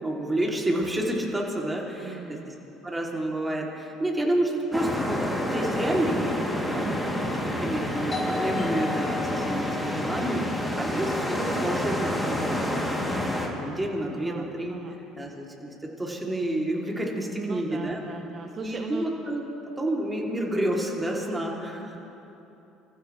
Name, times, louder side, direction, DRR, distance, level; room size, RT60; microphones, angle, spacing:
voice 1, 0.0-2.5 2.8-7.0 7.6-12.7 13.0-14.8 15.2-18.0 18.6-19.4 19.8-22.0, right 1 dB, 15° right, -2 dB, 3.5 m, -29 dB
voice 2, 2.0-2.5 6.8-7.4 14.1-15.0 17.4-19.1, right 5 dB, 40° right, 4 dB, 1.0 m, -38 dB
sound 1, 4.7-13.5, equal, 5° left, 3.2 m, -28 dB
Doorbell, 8.1-13.5, left 5 dB, 25° left, 3.1 m, -38 dB
26.5 x 14.5 x 3.5 m, 3.0 s
hypercardioid pair, 65°, 0 cm